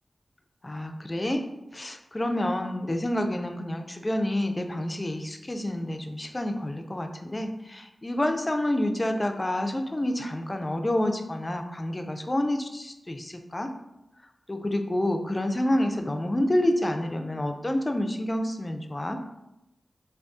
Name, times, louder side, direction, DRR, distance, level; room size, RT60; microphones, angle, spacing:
voice 1, 0.6-1.4 1.7-13.7 14.5-19.2, left 1 dB, 25° left, 5 dB, 0.3 m, -28 dB
2.5 x 2.3 x 3.5 m, 0.89 s
wide cardioid pair, 90°, 0 cm